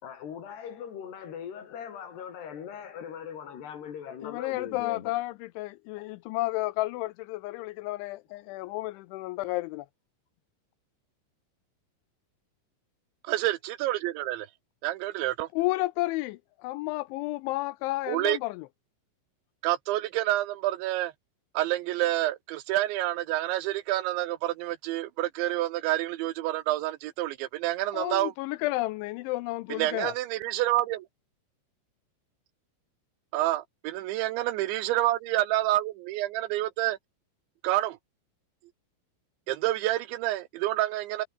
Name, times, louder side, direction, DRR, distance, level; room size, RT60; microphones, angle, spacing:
voice 1, 0.0-5.1 8.5-8.6, left 8 dB, 60° left, 4.9 m, -40 dB
voice 2, 4.2-9.9 15.6-16.4 16.6-18.7 27.9-30.1, left 19 dB, 80° left, 2.9 m, -31 dB
voice 3, 13.2-14.5 14.8-15.5 18.1-18.4 19.6-21.1 21.5-28.3 29.7-31.1 33.3-37.0 37.6-38.0 39.5-41.3, right 15 dB, 75° right, 3.1 m, -28 dB
omnidirectional pair, 5.6 m